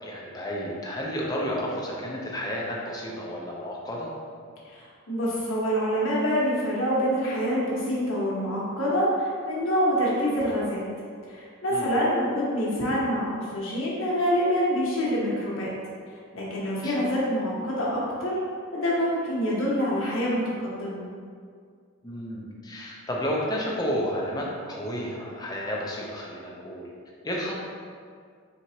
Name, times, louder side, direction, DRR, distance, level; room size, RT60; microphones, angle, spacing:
voice 1, 0.0-4.1 11.7-11.9 16.8-17.1 22.0-26.9 27.2-27.6, equal, 20° left, -3 dB, 0.6 m, -31 dB
voice 2, 4.6-10.8 11.3-15.7 16.3-18.4 18.7-21.0, equal, 65° left, -6 dB, 1.2 m, -26 dB
4.6 x 3.9 x 2.8 m, 2.1 s
head